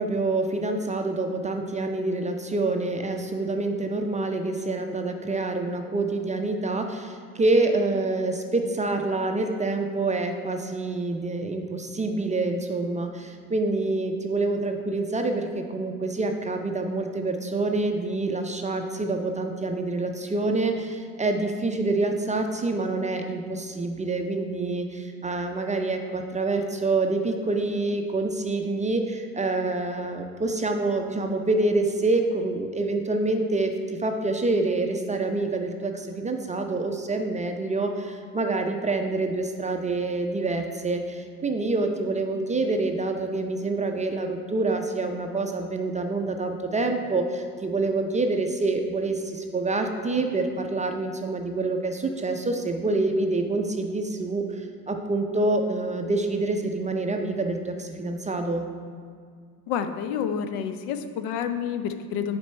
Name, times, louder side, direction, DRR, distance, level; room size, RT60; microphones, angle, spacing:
voice 1, 0.0-58.7, right 2 dB, 15° right, 4 dB, 0.5 m, -27 dB
voice 2, 59.7-62.4, left 8 dB, 60° left, 9 dB, 0.6 m, -29 dB
7.2 x 4.5 x 4.2 m, 2.1 s
hypercardioid pair, 65°, 45 cm